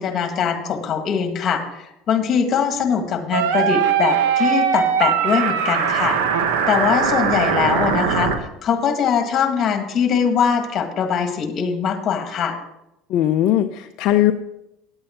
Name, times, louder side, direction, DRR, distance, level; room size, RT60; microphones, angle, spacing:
voice 1, 0.0-6.2 6.7-12.6, left 7 dB, 45° left, 6 dB, 1.6 m, -22 dB
sound 1, 3.3-8.4, right 7 dB, 85° right, 1.1 m, -20 dB
voice 2, 13.1-14.3, left 12 dB, 60° left, 6 dB, 0.5 m, -18 dB
9.7 x 8.7 x 4.4 m, 0.85 s
supercardioid pair, 110°, 0 cm